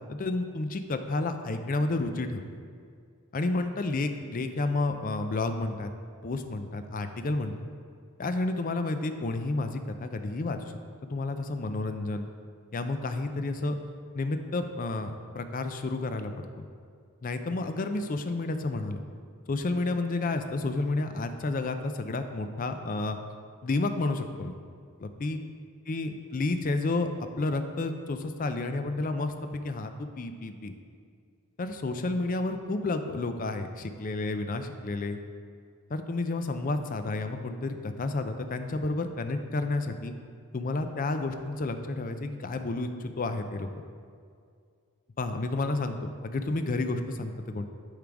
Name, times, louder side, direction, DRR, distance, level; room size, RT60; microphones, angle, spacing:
voice 1, 0.1-2.4 3.3-5.9 6.2-7.6 8.2-12.3 12.7-13.7 14.1-16.7 17.2-19.0 19.5-23.2 23.6-24.6 25.0-25.4 25.9-30.7 31.6-35.2 35.9-40.1 40.5-43.7 45.2-47.7, left 2 dB, 40° left, 8 dB, 0.4 m, -31 dB
10.5 x 3.7 x 4.7 m, 2.2 s
head